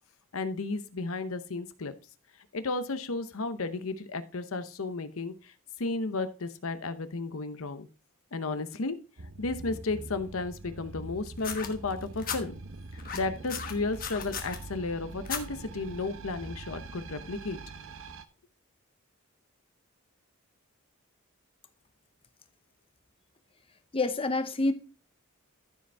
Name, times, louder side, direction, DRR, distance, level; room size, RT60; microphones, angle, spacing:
voice 1, 0.3-1.9 2.5-5.5 5.8-7.9 8.3-9.0 9.4-12.5 12.9-17.6, left 3 dB, 65° left, 0.8 m, -33 dB
sound 1, 9.2-18.2, right 2 dB, 60° right, 0.8 m, -44 dB
sound 2, 11.4-12.4 13.0-14.6 15.3-15.4 16.4-16.5, left 7 dB, 40° left, 1.2 m, -36 dB
voice 2, 23.9-24.7, left 2 dB, 25° left, 0.8 m, -27 dB
14.0 x 5.2 x 3.4 m
head